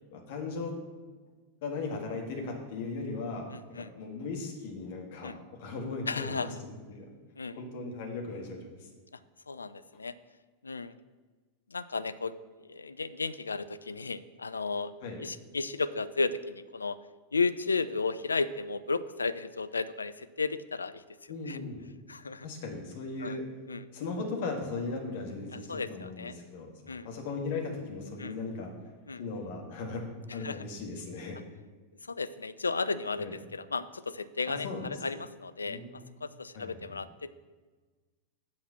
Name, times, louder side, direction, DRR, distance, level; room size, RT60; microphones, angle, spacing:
voice 1, 0.1-0.8 1.6-7.1 7.6-8.6 15.0-15.2 21.3-21.9 22.4-23.5 23.9-28.7 29.2-30.1 30.3-31.4 33.2-33.3 34.5-34.9 35.6-36.1 36.5-37.0, left 3 dB, 50° left, 1 dB, 1.7 m, -37 dB
voice 2, 3.5-3.9 5.2-5.4 6.1-6.5 7.4-7.6 9.5-10.2 10.6-10.9 11.7-14.9 15.2-17.0 17.3-21.0 21.5-21.6 22.1-22.5 23.2-23.4 23.7-23.8 25.7-26.3 26.9-27.1 28.2-28.3 29.1-29.2 30.3-30.6 32.1-35.8 36.2-37.4, left 4 dB, 75° left, 14 dB, 0.4 m, -34 dB
7.7 x 5.9 x 5.6 m, 1.3 s
figure-of-eight pair, 90°, 0 cm